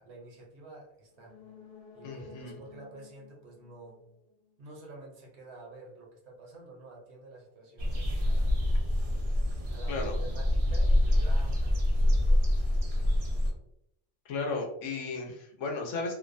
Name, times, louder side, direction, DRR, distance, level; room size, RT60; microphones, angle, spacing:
voice 1, 0.0-1.4 1.9-4.0 4.6-8.6 9.7-12.4, right 2 dB, 65° right, -2 dB, 1.0 m, -49 dB
sound 1, 1.1-4.8 5.1-5.2, left 5 dB, 60° left, 0.6 m, -53 dB
voice 2, 2.0-2.5 9.9-10.1 14.3-16.1, left 3 dB, 85° left, 1 dB, 1.0 m, -34 dB
sound 2, 7.8-13.5, left 1 dB, 45° right, 0.4 m, -26 dB
2.7 x 2.1 x 2.5 m, 0.76 s
omnidirectional pair, 1.3 m